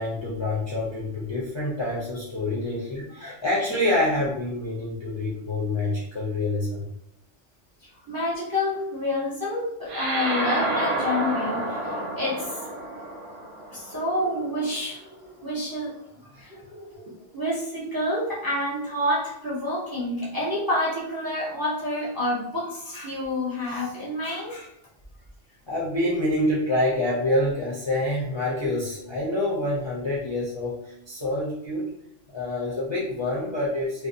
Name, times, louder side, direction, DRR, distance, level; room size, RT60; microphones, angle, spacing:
voice 1, 0.0-6.8 25.7-31.9 32.3-34.1, left 1 dB, 35° left, -7 dB, 0.4 m, -27 dB
voice 2, 7.8-12.6 13.7-15.9 16.3-24.7, left 1 dB, 25° right, -6 dB, 0.4 m, -29 dB
sound 1, 9.9-14.6, right 1 dB, 85° right, 1.0 m, -29 dB
2.6 x 2.1 x 2.6 m, 0.76 s
omnidirectional pair, 1.2 m